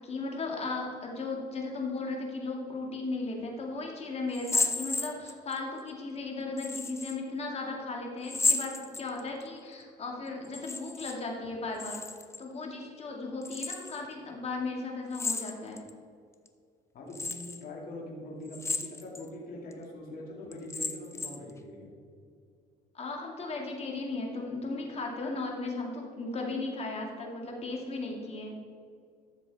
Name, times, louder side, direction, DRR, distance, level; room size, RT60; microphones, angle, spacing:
voice 1, 0.0-12.0 12.4-15.8 22.9-28.6, left 3 dB, 40° left, 0 dB, 2.3 m, -36 dB
sound 1, 4.3-5.6 6.6-7.2 8.2-9.4 10.4-11.2 11.4-12.4 13.4-14.0 15.1-15.9 16.5-16.6 17.1-17.6 18.5-19.2 19.7-19.8 20.5-21.5, left 3 dB, 15° left, 0.7 m, -33 dB
voice 2, 16.9-21.9, left 1 dB, 60° left, -2 dB, 2.4 m, -43 dB
12.5 x 7.1 x 4.1 m, 2.2 s
cardioid pair, 110°, 17 cm